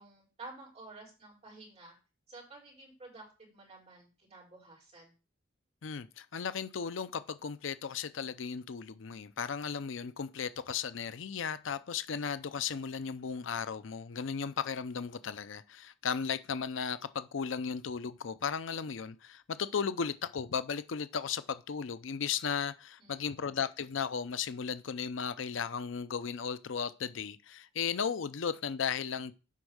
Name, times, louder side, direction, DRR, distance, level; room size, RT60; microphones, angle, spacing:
voice 1, 0.0-1.9 2.3-5.1 23.0-23.3, right 3 dB, 30° right, 4.8 m, -51 dB
voice 2, 5.8-29.3, left 6 dB, 70° left, 0.5 m, -35 dB
8.3 x 5.3 x 6.2 m
head